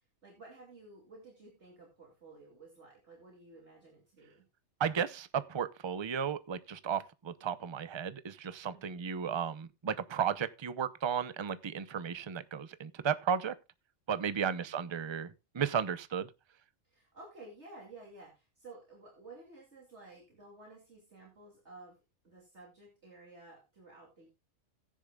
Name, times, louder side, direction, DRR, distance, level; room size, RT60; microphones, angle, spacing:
voice 1, 0.2-4.5 8.7-9.0 14.4-14.7 16.8-24.3, right 2 dB, 60° right, 3.0 m, -54 dB
voice 2, 4.8-13.5 14.1-16.3, right 7 dB, 30° right, 0.5 m, -34 dB
15.5 x 10.0 x 2.3 m
omnidirectional pair, 1.3 m